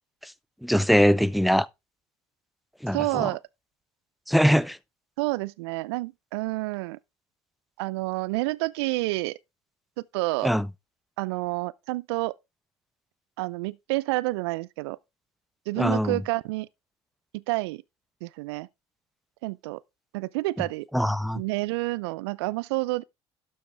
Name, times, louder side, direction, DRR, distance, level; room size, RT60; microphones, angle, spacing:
voice 1, 0.6-1.7 2.8-3.3 4.3-4.8 10.4-10.7 15.8-16.2 20.9-21.4, equal, ahead, 0.5 m, -22 dB
voice 2, 2.9-3.4 5.2-7.0 7.8-9.4 10.1-10.5 11.2-12.3 13.4-15.0 15.7-16.7 17.3-17.8 18.2-18.7 19.4-19.8 20.1-20.9 21.3-23.0, right 21 dB, 75° right, 0.5 m, -29 dB
12.0 x 6.4 x 3.3 m
hypercardioid pair, 60°, 14 cm